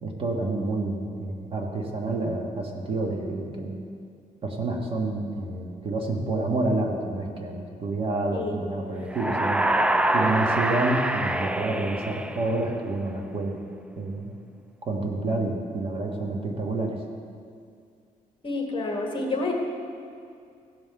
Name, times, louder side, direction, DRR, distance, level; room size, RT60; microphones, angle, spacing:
voice 1, 0.0-3.8 4.4-9.7 10.1-13.6 14.0-14.4 14.8-17.0, right 2 dB, 40° right, 1 dB, 1.4 m, -28 dB
sound 1, 9.1-12.9, right 1 dB, 5° right, 0.3 m, -25 dB
voice 2, 18.4-19.5, left 3 dB, 35° left, 1 dB, 1.6 m, -28 dB
16.0 x 5.6 x 6.8 m, 2.4 s
cardioid pair, 160°, 15 cm